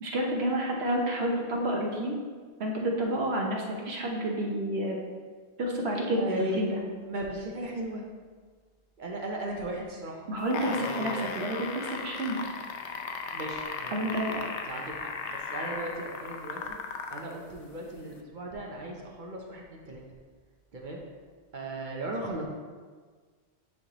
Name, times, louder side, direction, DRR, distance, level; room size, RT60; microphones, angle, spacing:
voice 1, 0.0-2.1 2.6-5.0 5.6-6.8 10.3-12.4 13.9-14.4, right 1 dB, 70° right, 0 dB, 1.1 m, -29 dB
voice 2, 6.1-6.6 7.0-8.0 9.0-10.3 10.8-11.3 13.3-16.8 17.1-20.0 20.7-21.0 21.5-22.4, right 1 dB, 50° right, 0 dB, 0.8 m, -37 dB
sound 1, 10.4-17.3 18.2-18.3, left 5 dB, 90° left, 0.9 m, -36 dB
9.4 x 3.4 x 2.9 m, 1.5 s
omnidirectional pair, 1.1 m